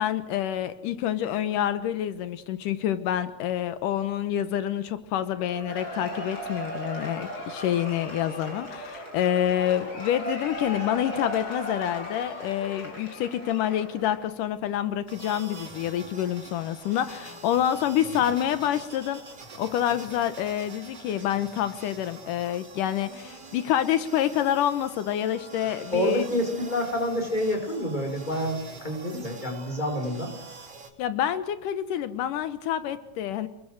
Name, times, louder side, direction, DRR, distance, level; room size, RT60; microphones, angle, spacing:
voice 1, 0.0-19.2 19.6-26.3 31.0-33.5, left 11 dB, 85° left, 11 dB, 2.6 m, -27 dB
Cheering / Applause / Crowd, 5.4-14.3, equal, 30° left, 7.6 m, -37 dB
sound 1, 15.1-30.9, right 3 dB, 35° right, 3.1 m, -45 dB
voice 2, 25.9-30.3, equal, 15° left, 4 dB, 5.5 m, -28 dB
29.5 x 20.5 x 6.5 m, 0.90 s
omnidirectional pair, 3.7 m